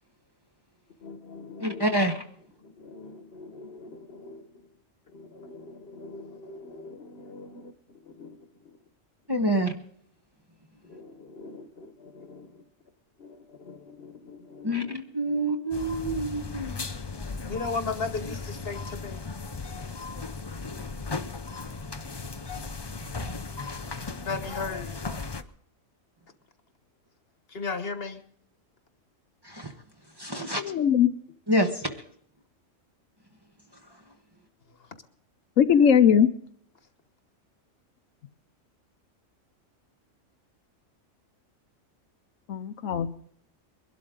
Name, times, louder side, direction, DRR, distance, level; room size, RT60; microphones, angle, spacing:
voice 1, 1.0-1.9 2.6-4.5 5.1-7.7 8.0-8.4 10.9-12.6 13.2-15.0 15.3-15.4 17.5-19.2 24.2-25.0 27.5-28.2, left 4 dB, 50° left, 1.4 m, -38 dB
voice 2, 1.6-2.2 9.3-9.7 14.6-16.8 29.4-29.7 30.2-30.6 31.5-32.0, right 1 dB, 20° right, 1.1 m, -27 dB
sound 1, 15.7-25.4, left 4 dB, 30° left, 0.5 m, -36 dB
voice 3, 30.6-31.1 35.6-36.3 42.5-43.1, left 8 dB, 75° left, 1.1 m, -20 dB
22.5 x 12.0 x 3.8 m
omnidirectional pair, 1.4 m